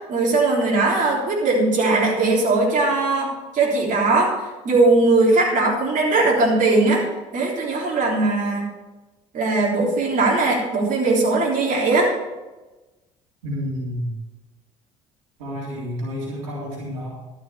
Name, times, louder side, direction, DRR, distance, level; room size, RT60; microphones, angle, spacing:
voice 1, 0.1-4.3 4.6-7.0 7.3-8.6 9.3-12.1, right 3 dB, 50° right, -2 dB, 3.5 m, -19 dB
voice 2, 13.4-14.2 15.4-17.1, equal, 85° right, -4 dB, 3.4 m, -29 dB
12.5 x 6.4 x 7.0 m, 1.1 s
hypercardioid pair, 65°, 17 cm